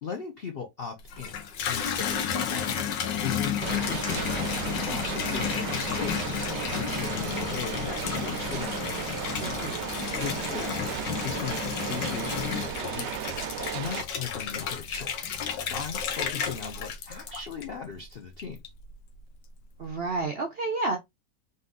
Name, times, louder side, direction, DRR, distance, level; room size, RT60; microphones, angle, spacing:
voice 1, 0.0-8.8 10.0-13.3 13.7-15.3 15.7-18.6, left 6 dB, 60° left, 0.6 m, -38 dB
Water tap faucet / Bathtub (filling or washing), 1.0-17.9 18.4-19.0, left 8 dB, 90° left, 1.5 m, -32 dB
sound 1, 3.6-14.0, right 9 dB, 80° right, 1.2 m, -35 dB
voice 2, 9.4-9.8 19.8-21.0, right 3 dB, 60° right, 0.6 m, -30 dB
4.0 x 2.6 x 3.7 m
omnidirectional pair, 1.9 m